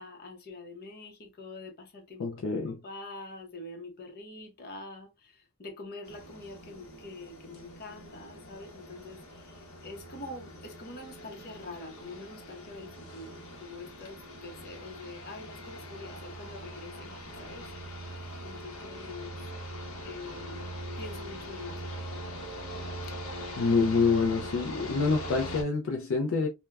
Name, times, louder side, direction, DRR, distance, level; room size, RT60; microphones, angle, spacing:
voice 1, 0.0-19.4 20.0-20.7 21.0-21.9, left 2 dB, 45° left, 0.8 m, -45 dB
voice 2, 2.2-2.8 23.6-26.5, left 4 dB, 65° left, 0.4 m, -26 dB
sound 1, 6.0-25.6, equal, 80° left, 0.9 m, -42 dB
3.2 x 2.2 x 2.2 m
head